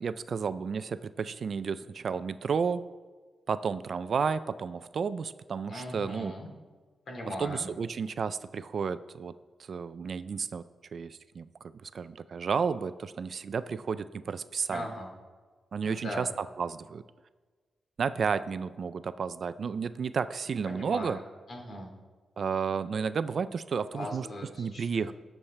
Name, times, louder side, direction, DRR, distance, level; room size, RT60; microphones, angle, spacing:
voice 1, 0.0-2.9 3.5-6.3 7.4-9.3 9.6-10.7 10.9-11.5 11.8-14.9 15.7-17.0 18.0-21.2 22.4-24.3 24.6-25.1, right 6 dB, 50° right, 13 dB, 0.3 m, -32 dB
voice 2, 5.7-6.5 7.1-7.7 14.7-15.1 15.8-16.3 20.7-21.2 21.5-21.9 23.9-25.1, left 1 dB, 55° left, 0 dB, 2.7 m, -39 dB
18.5 x 7.2 x 3.3 m, 1.4 s
wide cardioid pair, 140°, 0 cm